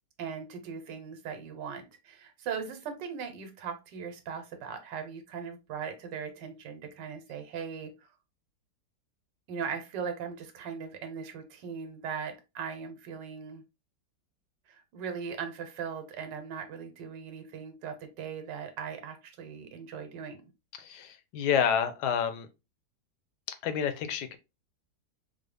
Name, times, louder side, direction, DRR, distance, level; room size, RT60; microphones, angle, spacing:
voice 1, 0.2-8.1 9.5-13.6 14.7-20.4, right 6 dB, 90° right, 1.4 m, -39 dB
voice 2, 20.8-22.5 23.6-24.4, left 8 dB, 75° left, 1.1 m, -29 dB
3.8 x 2.0 x 3.2 m
omnidirectional pair, 1.9 m